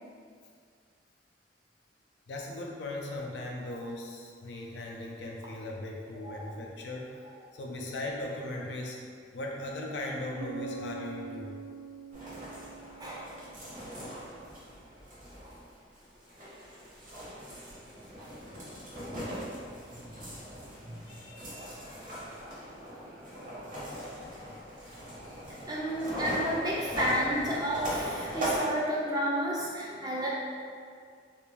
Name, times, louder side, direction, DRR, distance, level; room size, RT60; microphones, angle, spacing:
voice 1, 2.3-7.1 7.5-9.0 9.3-11.5 21.0-21.7, left 1 dB, 70° left, -1 dB, 0.4 m, -38 dB
Bass guitar, 10.4-14.0, right 4 dB, 85° right, 0.4 m, -43 dB
sound 1, 12.1-28.6, equal, 45° right, 0.7 m, -40 dB
voice 2, 12.8-13.4 15.4-15.5 17.9-18.1 19.9-20.1 20.8-21.2 21.7-22.0 22.5-23.2 23.7-24.8 25.6-30.3, equal, 20° right, -5 dB, 0.4 m, -33 dB
2.5 x 2.3 x 3.1 m, 2.1 s
head